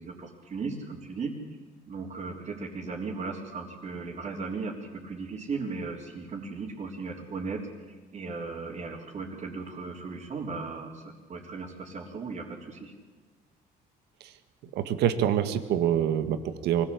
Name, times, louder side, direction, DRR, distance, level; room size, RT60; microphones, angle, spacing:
voice 1, 0.0-1.3 1.9-7.6 7.9-12.9, right 4 dB, 40° right, -5 dB, 3.8 m, -37 dB
voice 2, 14.7-16.8, right 10 dB, 80° right, 10 dB, 1.8 m, -26 dB
24.0 x 17.5 x 8.6 m, 1.3 s
cardioid pair, 110°, 17 cm